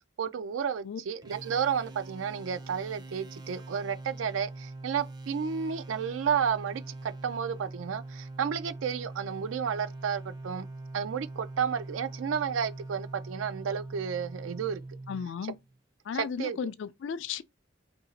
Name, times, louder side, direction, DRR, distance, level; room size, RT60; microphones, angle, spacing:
voice 1, 0.2-10.7 10.9-14.8 16.1-16.6, right 7 dB, 85° right, 0.4 m, -32 dB
sound 1, 1.2-15.8, right 2 dB, 20° right, 0.4 m, -43 dB
voice 2, 15.1-15.6 16.0-17.4, left 6 dB, 65° left, 0.3 m, -35 dB
2.8 x 2.6 x 3.9 m
head